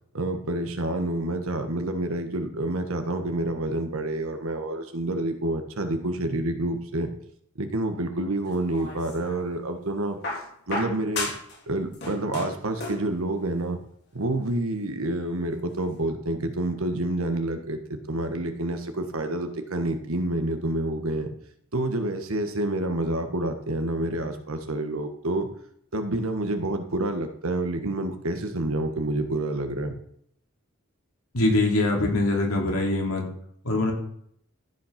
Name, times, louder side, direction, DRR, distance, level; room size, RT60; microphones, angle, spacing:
voice 1, 0.1-7.1 7.6-10.2 10.7-11.3 11.7-13.8 14.1-21.3 21.7-25.5 25.9-29.9, right 1 dB, 80° right, 7 dB, 1.4 m, -28 dB
sound 1, 8.5-9.4 10.2-11.6 11.8-13.1 14.2-14.3, left 2 dB, 50° left, 3.5 m, -33 dB
voice 2, 31.3-33.3 33.6-33.9, left 2 dB, 85° left, 0 dB, 3.0 m, -23 dB
14.0 x 5.6 x 5.9 m, 0.67 s
head